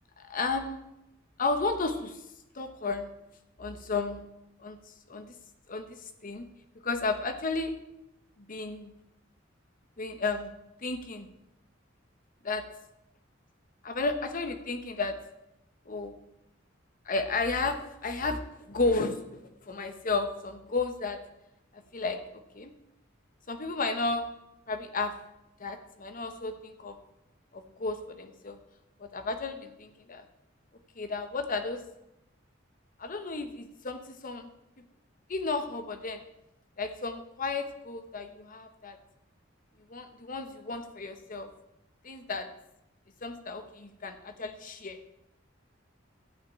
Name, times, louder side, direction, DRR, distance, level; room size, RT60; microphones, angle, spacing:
voice 1, 0.2-0.9 1.4-2.2 2.5-3.1 3.6-4.3 4.6-4.8 5.1-5.3 5.7-6.0 6.2-6.5 6.8-7.8 8.5-8.9 10.0-10.5 10.8-11.3 12.4-12.6 13.8-15.2 15.9-16.2 17.1-21.2 21.7-22.7 23.5-24.3 24.7-25.1 25.6-27.0 27.5-28.6 29.0-30.2 31.0-31.8 33.0-34.5 35.3-36.2 36.8-39.0 39.9-41.5 42.0-42.5 43.2-45.0, left 3 dB, 45° left, 8 dB, 1.0 m, -33 dB
12.0 x 5.8 x 8.5 m, 0.86 s
head